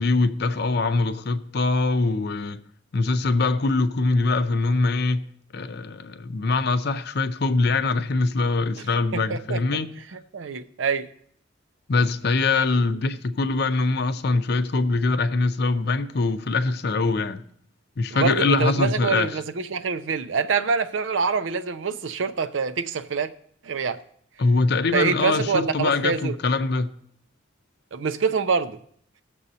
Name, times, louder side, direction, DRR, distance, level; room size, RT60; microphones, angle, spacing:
voice 1, 0.0-2.6 2.9-5.2 5.5-10.0 11.9-17.4 18.0-19.4 24.4-26.9, left 3 dB, 60° left, 0.5 m, -23 dB
voice 2, 9.1-9.6 10.1-11.1 18.1-23.3 23.6-24.0 24.9-26.3 27.9-28.8, right 5 dB, 85° right, 0.5 m, -25 dB
18.5 x 6.9 x 2.8 m
head